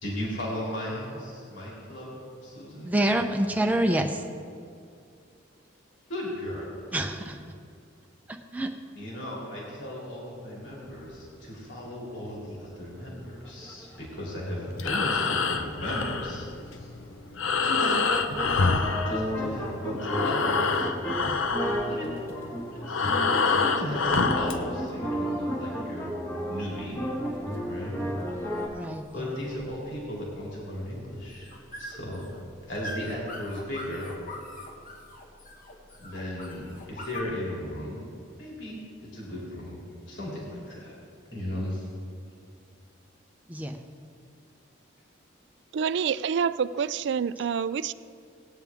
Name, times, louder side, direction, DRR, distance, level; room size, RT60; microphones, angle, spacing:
voice 1, 0.0-2.9 6.1-6.9 8.9-16.9 17.6-18.1 18.7-20.9 21.9-22.1 22.7-26.1 26.4-27.0 27.6-28.0 28.3-28.4 29.1-31.5 31.8-32.3 32.7-34.1 36.0-38.0 38.4-39.8 40.1-40.9 41.3-41.9, left 1 dB, 70° left, -5 dB, 3.0 m, -36 dB
voice 2, 2.8-4.2 6.9-7.4 8.5-8.7 28.7-29.3 43.5-43.8, right 1 dB, 10° right, 3 dB, 0.6 m, -26 dB
sound 1, 10.7-11.3 11.5-12.3 12.6-12.7 12.9-13.0 13.2-15.2 15.6-16.9 17.4-17.5 18.1-28.7, equal, 15° left, 1.4 m, -33 dB
Breathing, 14.7-19.7 19.9-24.6, left 4 dB, 85° left, 0.7 m, -27 dB
sound 2, 27.2-37.2, left 1 dB, 40° left, 1.4 m, -44 dB
voice 3, 45.7-47.9, right 6 dB, 60° right, 16 dB, 0.3 m, -27 dB
18.5 x 9.6 x 3.6 m, 2.3 s
head